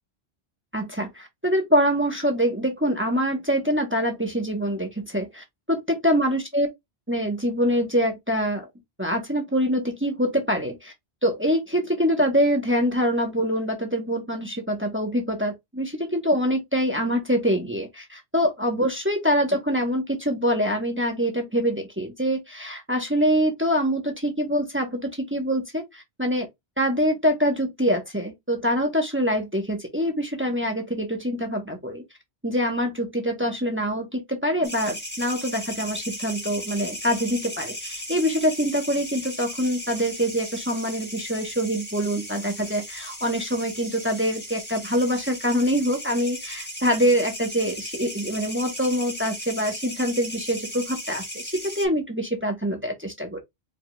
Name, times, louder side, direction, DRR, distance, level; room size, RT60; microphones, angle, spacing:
voice 1, 0.7-6.7 7.1-8.7 9.0-10.9 11.2-26.5 26.8-32.0 32.4-53.4, equal, 10° right, 1.0 m, -25 dB
sound 1, 34.6-51.9, equal, 10° left, 1.1 m, -36 dB
4.9 x 3.6 x 2.2 m
omnidirectional pair, 1.1 m